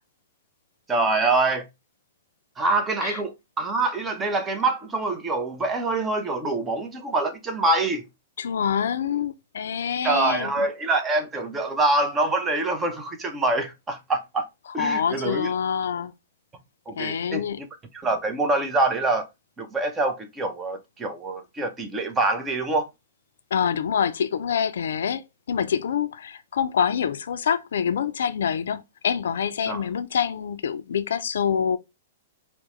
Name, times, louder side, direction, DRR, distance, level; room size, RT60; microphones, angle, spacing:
voice 1, 0.9-1.6 2.6-8.0 10.0-14.5 14.7-15.5 16.9-17.4 17.9-19.3 19.6-22.9 29.7-29.8, right 2 dB, 20° right, 0.7 m, -25 dB
voice 2, 8.4-10.5 14.8-16.1 17.0-17.6 23.5-31.8, left 7 dB, 70° left, 0.4 m, -26 dB
4.5 x 2.1 x 3.0 m
hypercardioid pair, 120°, 0 cm